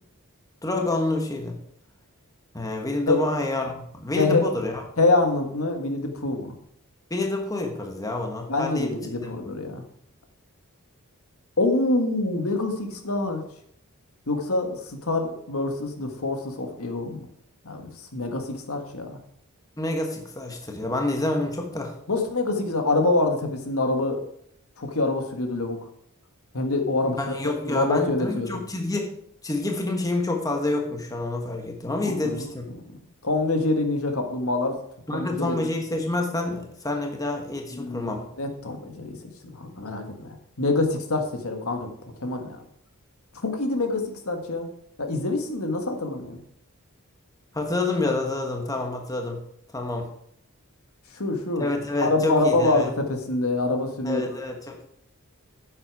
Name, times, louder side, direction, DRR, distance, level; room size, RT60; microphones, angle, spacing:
voice 1, 0.6-1.6 2.5-4.8 7.1-9.3 19.8-21.9 27.0-29.1 29.4-32.6 35.1-38.2 47.5-49.4 49.7-50.1 51.6-52.9 54.0-54.8, left 2 dB, 15° left, 2 dB, 1.2 m, -28 dB
voice 2, 4.2-4.5 5.0-6.5 8.5-9.8 11.6-13.4 14.3-17.3 17.6-19.2 22.1-24.2 24.8-25.8 26.5-28.6 32.0-32.5 32.8-33.0 33.2-34.8 35.1-35.7 37.7-42.6 43.4-44.7 45.0-46.4 51.1-51.7 52.0-54.4, left 2 dB, 75° left, 4 dB, 1.6 m, -26 dB
9.8 x 7.6 x 4.7 m, 0.69 s
head